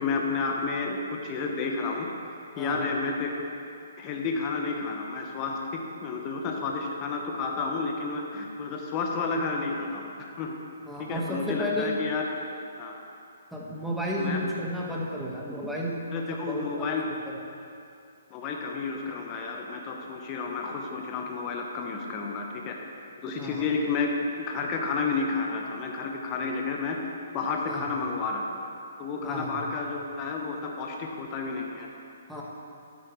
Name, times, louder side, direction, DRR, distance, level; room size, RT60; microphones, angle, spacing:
voice 1, 0.0-3.3 4.0-10.5 11.0-12.4 12.8-12.9 14.2-14.4 16.1-17.0 18.3-22.8 23.2-24.1 24.5-27.0 27.3-28.4 29.0-31.9, left 4 dB, 30° left, 1 dB, 1.0 m, -31 dB
voice 2, 10.9-11.9 13.5-16.0 16.3-17.0 23.4-23.6 27.7-27.9 29.2-29.5 32.3-32.4, equal, ahead, -5 dB, 1.4 m, -32 dB
12.0 x 8.4 x 3.2 m, 2.6 s
hypercardioid pair, 135°, 0 cm